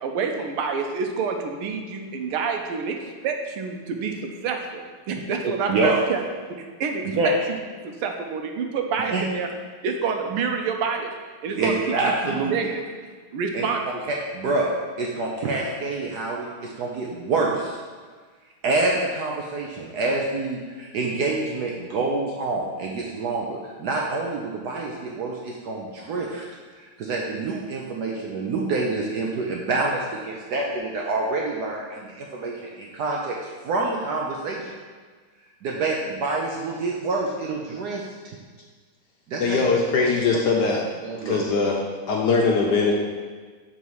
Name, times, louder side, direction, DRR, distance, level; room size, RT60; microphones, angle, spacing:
voice 1, 0.0-3.0 3.2-7.6 7.8-9.5 9.8-11.1 11.4-11.8 12.3-12.8 13.3-13.8, right 5 dB, 85° right, 4 dB, 1.6 m, -28 dB
voice 2, 5.4-5.9 7.1-7.3 9.1-9.2 11.5-12.5 13.5-13.6 14.1-14.7 15.0-17.8 18.6-26.5 26.8-33.4 33.6-34.7 35.6-38.0 39.3-39.6 41.0-41.5, right 3 dB, 70° right, -1 dB, 0.9 m, -27 dB
voice 3, 39.4-40.8 41.2-41.8 42.1-42.9, left 4 dB, 70° left, -1 dB, 1.0 m, -21 dB
7.1 x 4.0 x 4.7 m, 1.5 s
omnidirectional pair, 2.3 m